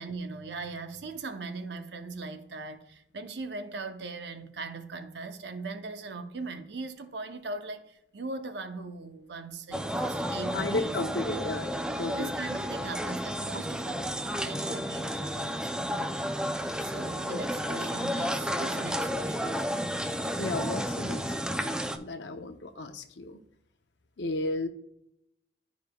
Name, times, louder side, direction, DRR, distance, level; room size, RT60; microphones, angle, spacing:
voice 1, 0.0-11.0 12.1-16.1 16.8-19.9, right 3 dB, 75° right, 0.8 m, -40 dB
sound 1, 9.7-22.0, equal, 5° right, 0.4 m, -32 dB
voice 2, 10.5-12.3 17.3-17.4 17.7-17.9 20.4-21.3 21.6-23.4 24.2-24.7, left 2 dB, 85° left, 0.7 m, -34 dB
11.5 x 5.0 x 2.3 m
head